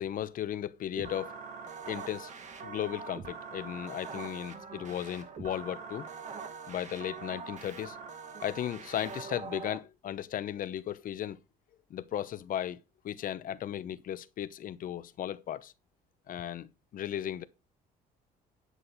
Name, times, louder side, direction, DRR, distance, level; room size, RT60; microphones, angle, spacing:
voice 1, 0.0-1.4 1.9-2.3 2.6-6.1 6.7-8.0 8.4-11.4 11.9-12.8 13.0-15.7 16.3-17.4, left 10 dB, 55° left, 0.8 m, -36 dB
sound 1, 1.0-9.8, right 5 dB, 45° right, 2.0 m, -43 dB
11.0 x 6.3 x 4.1 m
cardioid pair, 110°, 17 cm